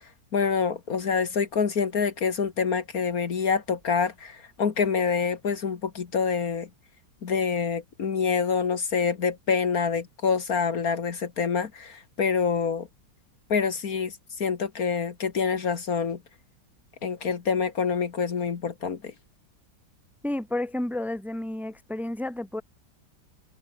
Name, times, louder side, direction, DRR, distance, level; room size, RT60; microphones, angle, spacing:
voice 1, 0.3-6.7 7.2-12.9 13.5-16.2 17.0-19.1, left 6 dB, 55° left, 1.9 m, -26 dB
voice 2, 20.2-22.6, left 1 dB, ahead, 1.8 m, -31 dB
omnidirectional pair, 1.9 m